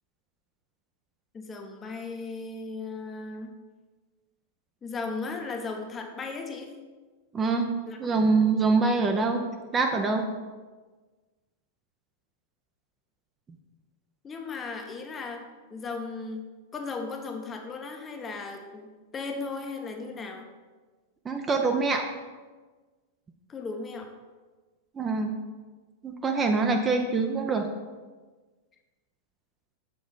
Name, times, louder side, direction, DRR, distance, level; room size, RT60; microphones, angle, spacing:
voice 1, 1.3-3.5 4.8-6.7 7.9-8.1 14.2-16.4 16.7-18.9 19.1-20.5 23.5-24.1, left 4 dB, 20° left, 4 dB, 0.9 m, -36 dB
voice 2, 7.3-7.7 8.0-9.4 9.7-10.2 21.3-22.1 25.0-25.3 26.0-27.7, right 4 dB, 20° right, 4 dB, 0.6 m, -24 dB
6.9 x 5.9 x 4.0 m, 1.3 s
figure-of-eight pair, 95°, 0 cm